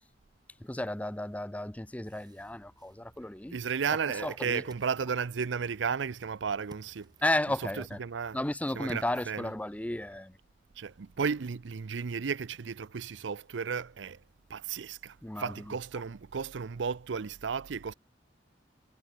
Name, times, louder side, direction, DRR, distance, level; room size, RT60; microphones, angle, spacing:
voice 1, 0.7-3.6 4.2-4.6 7.2-8.0 8.3-10.3 15.2-15.7, left 1 dB, 10° left, 0.5 m, -33 dB
Ocean, 2.0-10.2, right 1 dB, 25° right, 4.8 m, -58 dB
voice 2, 3.5-7.1 7.5-8.4 8.7-9.5 10.8-14.2 14.5-17.9, right 6 dB, 80° right, 0.5 m, -34 dB
head